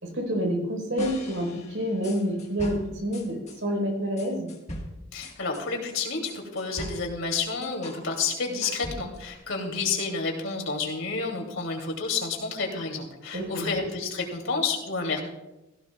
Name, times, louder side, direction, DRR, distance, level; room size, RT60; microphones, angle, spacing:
voice 1, 0.0-4.5 13.3-13.7, equal, 70° right, 1 dB, 4.4 m, -28 dB
sound 1, 1.0-3.6 4.2-8.0 8.3-9.3, left 1 dB, 35° left, 1.6 m, -40 dB
voice 2, 5.1-15.2, left 4 dB, 80° left, 1 dB, 2.8 m, -30 dB
16.5 x 15.5 x 2.4 m, 0.99 s
head